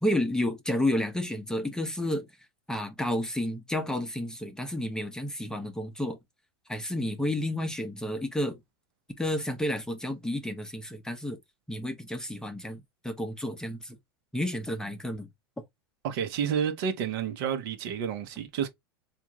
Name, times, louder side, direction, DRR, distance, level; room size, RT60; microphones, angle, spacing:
voice 1, 0.0-2.3 2.7-6.2 6.7-8.6 9.2-11.4 11.7-14.0 14.3-15.3, left 1 dB, 5° left, 0.7 m, -31 dB
voice 2, 16.0-18.7, right 8 dB, 65° right, 0.9 m, -30 dB
3.5 x 2.5 x 2.9 m
supercardioid pair, 115°, 13 cm